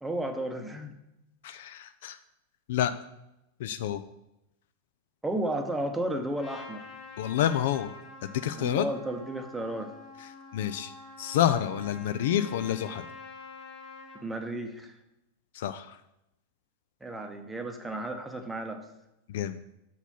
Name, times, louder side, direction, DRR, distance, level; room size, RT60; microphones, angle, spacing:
voice 1, 0.0-1.0 5.2-6.9 8.6-9.9 14.2-14.9 17.0-18.8, right 1 dB, 5° right, 5 dB, 0.8 m, -33 dB
voice 2, 1.4-2.2 2.7-2.9 3.6-4.0 7.2-7.9 8.3-8.9 10.5-10.9 11.2-13.0 15.5-16.0 19.3-19.6, left 11 dB, 55° left, 11 dB, 0.3 m, -28 dB
Trumpet, 6.4-14.2, left 3 dB, 20° left, 2.1 m, -47 dB
6.9 x 4.1 x 5.5 m, 0.87 s
figure-of-eight pair, 90°, 0 cm